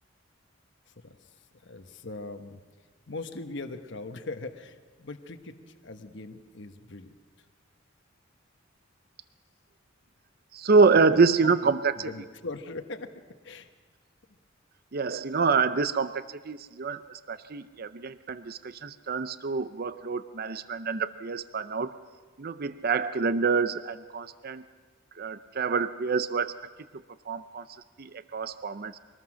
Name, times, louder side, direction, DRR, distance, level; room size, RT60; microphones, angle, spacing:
voice 1, 1.6-2.6 3.1-7.1 11.1-11.5 12.0-13.1 13.4-13.7, left 3 dB, 65° left, 7 dB, 1.2 m, -40 dB
voice 2, 10.5-12.1 14.9-21.9 22.4-24.6 25.2-26.5 27.3-27.6 28.0-29.0, right 4 dB, 50° right, 12 dB, 0.6 m, -26 dB
24.0 x 19.5 x 6.3 m, 1.4 s
head